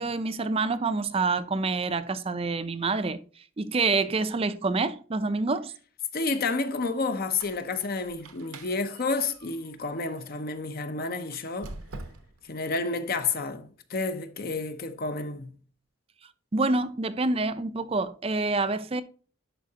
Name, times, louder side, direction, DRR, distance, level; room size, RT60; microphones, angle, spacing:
voice 1, 0.0-3.2 3.6-5.7 16.5-19.0, right 3 dB, 25° right, 0.4 m, -27 dB
voice 2, 6.1-11.7 12.5-15.5, left 3 dB, 45° left, 0.7 m, -30 dB
Squeak, 7.2-10.4 11.2-12.5, right 2 dB, 85° right, 1.0 m, -46 dB
11.0 x 4.6 x 2.8 m
head